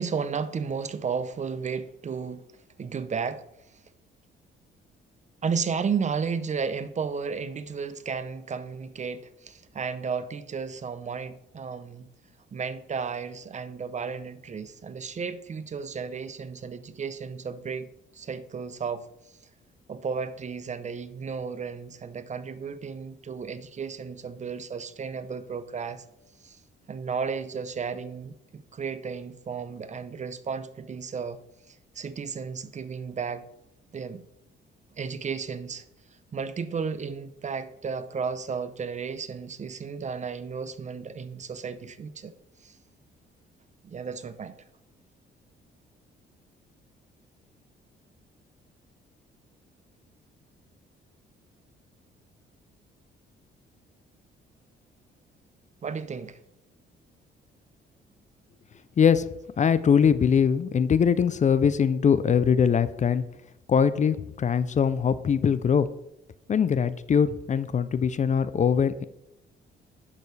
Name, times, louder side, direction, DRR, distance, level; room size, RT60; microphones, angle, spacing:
voice 1, 0.0-2.4 2.8-3.4 5.4-12.1 12.5-17.9 18.1-19.1 19.9-26.0 26.4-26.6 26.9-31.4 31.7-33.4 33.9-34.2 34.9-35.9 36.3-42.3 42.6-42.8 43.8-44.6 55.8-56.4, right 5 dB, 35° right, 0.7 m, -33 dB
voice 2, 59.6-63.2 63.7-65.9 66.5-69.0, left 7 dB, 40° left, 0.5 m, -22 dB
11.0 x 6.9 x 3.3 m
cardioid pair, 90°, 20 cm